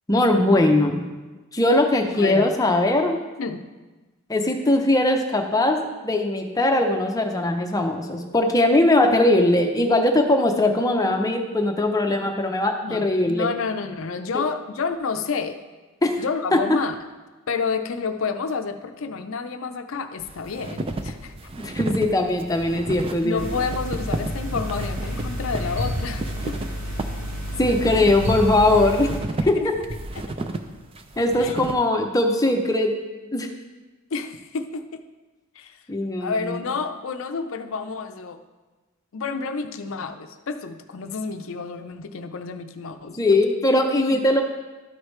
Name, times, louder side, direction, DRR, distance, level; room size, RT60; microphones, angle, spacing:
voice 1, 0.1-1.0 1.5-3.2 4.3-13.5 16.0-16.2 21.6-23.4 27.6-29.1 29.5-29.7 31.2-33.0 33.3-33.5 35.9-36.6 43.2-44.4, left 1 dB, 15° left, 3 dB, 0.6 m, -20 dB
voice 2, 2.1-2.5 3.4-3.6 12.8-15.6 16.2-16.9 17.5-21.3 23.2-26.6 29.6-29.7 30.2-30.3 31.4-31.5 34.1-35.0 35.6-35.8 36.2-38.4 39.1-43.2, left 5 dB, 65° left, 8 dB, 0.5 m, -29 dB
sound 1, 20.2-31.7, right 2 dB, 25° right, 0.4 m, -33 dB
sound 2, 23.4-29.2, equal, 90° right, 2.1 m, -30 dB
12.5 x 4.8 x 3.2 m, 1.2 s
head